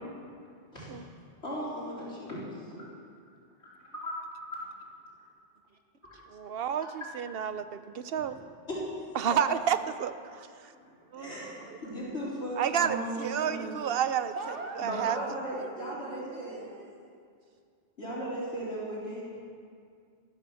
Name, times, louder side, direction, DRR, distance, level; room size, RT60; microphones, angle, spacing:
voice 1, 0.7-1.0 1.4-2.4 2.7-2.8 3.6-4.1 8.1-8.4 8.7-9.4 11.1-13.9 14.8-16.6 18.0-19.3, equal, 70° left, -7 dB, 4.6 m, -37 dB
voice 2, 6.3-8.3 9.2-10.1 11.1-11.3 12.6-14.3 14.8-15.2, right 8 dB, 60° right, 12 dB, 0.9 m, -30 dB
voice 3, 7.7-8.6 14.3-17.2, right 3 dB, 90° right, 3 dB, 1.8 m, -44 dB
14.5 x 13.5 x 6.3 m, 2.2 s
omnidirectional pair, 1.2 m